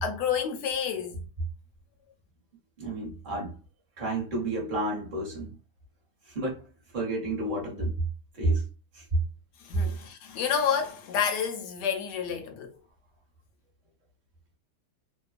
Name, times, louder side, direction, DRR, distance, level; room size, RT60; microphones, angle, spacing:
voice 1, 0.0-1.2 9.6-12.8, left 7 dB, 75° left, 1.1 m, -29 dB
voice 2, 2.8-3.5 4.0-5.6 6.3-6.6 6.9-7.9 8.4-8.6 8.9-9.2, right 2 dB, 35° right, 1.0 m, -30 dB
2.9 x 2.2 x 2.3 m
omnidirectional pair, 1.9 m